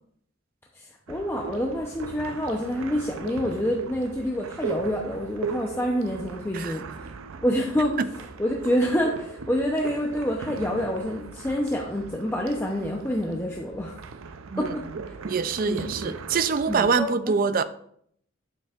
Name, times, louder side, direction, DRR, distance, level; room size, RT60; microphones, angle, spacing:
voice 1, 0.7-7.1 7.4-8.0 8.4-14.0 14.6-15.1 15.6-16.1 16.7-17.3, equal, 10° left, 0.7 m, -27 dB
sound 1, 1.1-17.0, right 4 dB, 90° right, 0.6 m, -39 dB
voice 2, 15.2-17.6, right 5 dB, 45° right, 0.4 m, -25 dB
9.0 x 7.6 x 2.5 m
head